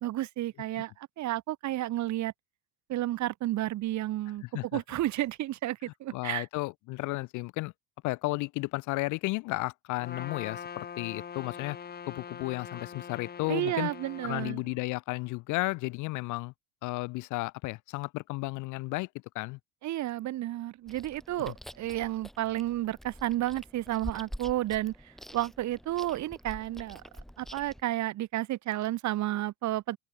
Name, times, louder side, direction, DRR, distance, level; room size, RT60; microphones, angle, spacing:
voice 1, 0.0-2.3 2.9-4.4 4.7-6.5 13.5-14.6 19.8-27.0 27.4-30.0, right 14 dB, 40° right, 1.0 m, -32 dB
voice 2, 4.4-4.8 6.1-7.7 8.0-11.8 12.1-13.9 14.2-16.5 16.8-19.1 19.3-19.6 21.4-21.5, left 22 dB, 45° left, 0.5 m, -33 dB
Trumpet, 10.0-14.6, left 7 dB, 20° left, 1.1 m, -43 dB
Chewing mastication, 20.9-27.8, equal, ahead, 2.5 m, -46 dB
open air
supercardioid pair, 100°, 46 cm